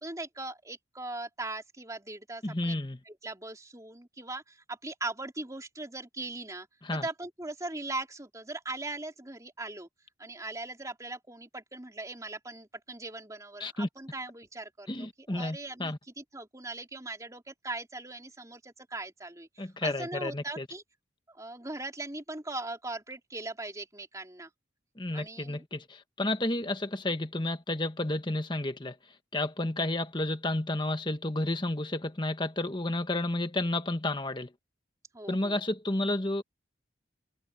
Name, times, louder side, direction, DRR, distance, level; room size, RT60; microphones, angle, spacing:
voice 1, 0.0-2.7 3.1-6.7 7.0-9.9 10.2-20.8 21.3-24.5 25.1-25.6 35.1-35.6, right 2 dB, 15° right, 3.4 m, -40 dB
voice 2, 2.4-3.0 6.8-7.0 13.6-13.9 14.9-16.0 19.6-20.6 25.0-28.9 29.3-34.5 35.3-36.4, left 2 dB, 25° left, 1.4 m, -31 dB
head